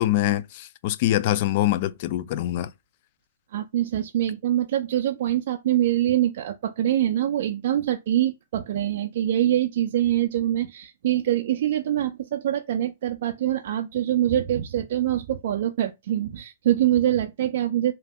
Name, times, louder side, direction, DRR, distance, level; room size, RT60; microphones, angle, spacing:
voice 1, 0.0-2.7, left 14 dB, 50° left, 0.3 m, -24 dB
voice 2, 3.5-17.9, right 12 dB, 60° right, 0.4 m, -24 dB
2.8 x 2.2 x 3.5 m
hypercardioid pair, 135°, 0 cm